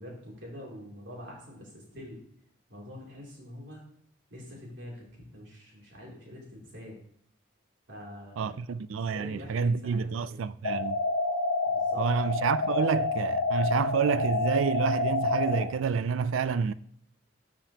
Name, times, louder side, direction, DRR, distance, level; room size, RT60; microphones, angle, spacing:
voice 1, 0.0-2.2 2.7-3.8 4.3-7.0 7.9-8.6 9.1-10.4 11.6-12.0, equal, 65° right, 2.9 m, -45 dB
voice 2, 8.4-11.0 12.0-16.7, right 5 dB, 85° right, 0.4 m, -28 dB
sound 1, 10.6-15.6, left 3 dB, 85° left, 1.3 m, -28 dB
13.0 x 5.1 x 2.8 m
head